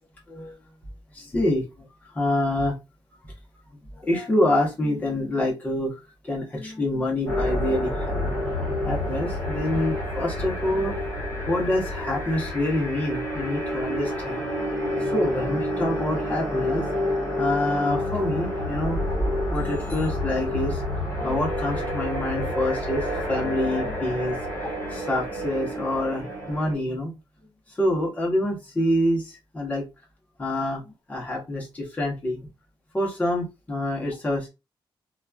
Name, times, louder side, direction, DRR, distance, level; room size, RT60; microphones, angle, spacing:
voice 1, 1.1-1.6 2.1-2.7 3.9-5.9 6.2-8.3 8.8-11.0 11.5-14.4 15.0-16.8 17.4-19.0 19.5-20.8 21.2-24.4 24.9-27.1 27.8-29.9 30.4-30.8 31.1-32.4 32.9-34.5, left 1 dB, 15° left, -3 dB, 1.0 m, -26 dB
sound 1, 7.3-26.7, left 1 dB, 35° left, 1.6 m, -29 dB
2.9 x 2.4 x 2.3 m, 0.25 s
wide cardioid pair, 160°, 9 cm